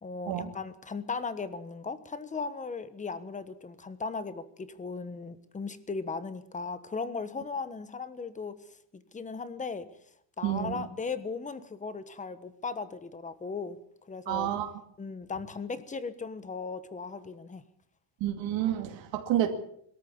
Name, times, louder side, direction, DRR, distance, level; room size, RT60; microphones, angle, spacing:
voice 1, 0.0-8.6 8.9-9.9 10.4-13.8 14.1-14.5 15.0-17.6, left 4 dB, 15° left, 13 dB, 1.3 m, -37 dB
voice 2, 10.4-10.8 14.3-14.7 18.2-19.5, right 12 dB, 75° right, 3 dB, 2.6 m, -29 dB
22.0 x 13.5 x 8.7 m, 0.68 s
cardioid pair, 165°, 45 cm